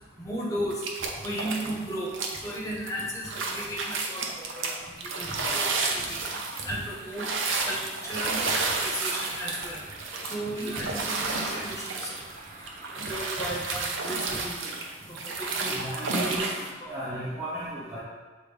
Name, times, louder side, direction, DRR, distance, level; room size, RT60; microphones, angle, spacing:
voice 1, 0.2-0.8 1.2-2.1 2.4-4.7 5.2-6.2 6.6-7.2 7.6-8.4 8.8-9.8 10.3-12.1 13.0-14.6 15.1-15.5 15.8-16.3 16.8-17.0, equal, 15° left, -5 dB, 1.3 m, -35 dB
sound 1, 0.7-1.8 2.1-16.7, right 3 dB, 90° right, 0.8 m, -31 dB
sound 2, 5.1-13.8, right 2 dB, 45° right, 0.8 m, -48 dB
voice 2, 15.6-16.6 16.9-18.0, right 1 dB, 5° right, -14 dB, 1.4 m, -34 dB
7.0 x 4.2 x 3.5 m, 1.4 s
head